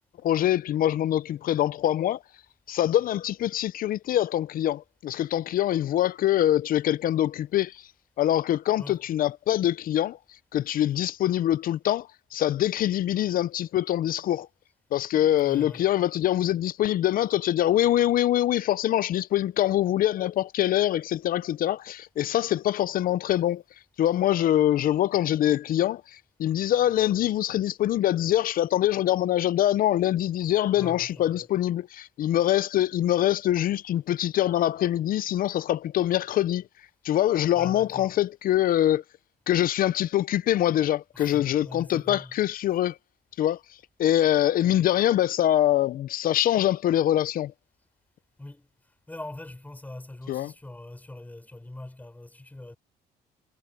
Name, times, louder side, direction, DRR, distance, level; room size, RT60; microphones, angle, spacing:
voice 1, 0.2-2.2 2.7-7.9 8.2-10.2 10.5-14.5 14.9-23.6 24.0-36.7 37.0-39.0 39.5-43.0 43.4-43.6 44.0-47.5 50.3-50.5, left 12 dB, 55° left, 0.6 m, -24 dB
voice 2, 15.4-15.9 30.7-31.5 37.5-38.2 41.1-42.4 44.6-44.8 48.4-52.8, left 1 dB, 10° left, 5.7 m, -42 dB
cardioid pair, 110°, 17 cm